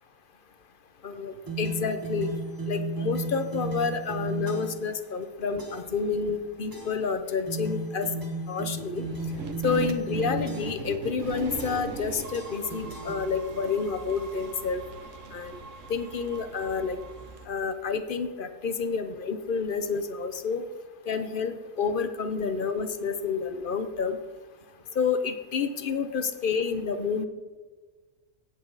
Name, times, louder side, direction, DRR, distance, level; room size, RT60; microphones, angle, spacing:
voice 1, 1.0-2.3 2.7-8.1 8.5-9.0 9.6-14.8 15.3-15.6 15.9-17.0 17.5-20.6 21.1-24.2 25.0-27.3, left 5 dB, 45° left, 9 dB, 0.8 m, -29 dB
sound 1, 1.5-4.9 5.6-6.0 6.7-7.1 7.5-10.9 11.6-12.0 12.3-13.7, right 1 dB, 15° right, 1.4 m, -34 dB
sound 2, 9.0-17.5, right 4 dB, 65° right, 1.4 m, -40 dB
16.5 x 7.6 x 3.9 m, 1.4 s
omnidirectional pair, 1.4 m